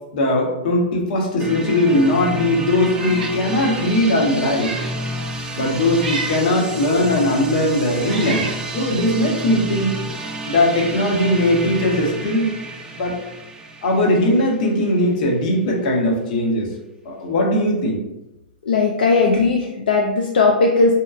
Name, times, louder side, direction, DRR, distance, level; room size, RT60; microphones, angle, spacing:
voice 1, 0.1-4.7 5.5-8.5 8.7-10.0 10.5-12.5 12.9-13.2 13.8-16.7 17.0-18.0, left 1 dB, 55° left, 0 dB, 0.8 m, -19 dB
sound 1, 1.4-15.1, right 1 dB, 15° right, 0.4 m, -30 dB
Meow, 2.9-3.4 3.8-3.9 4.4-5.0 5.9-6.5 7.3-7.4 8.0-8.6, right 3 dB, 70° right, 0.5 m, -30 dB
voice 2, 18.6-20.9, left 3 dB, 75° left, 0 dB, 0.3 m, -17 dB
2.8 x 2.2 x 2.3 m, 0.93 s
hypercardioid pair, 115°, 5 cm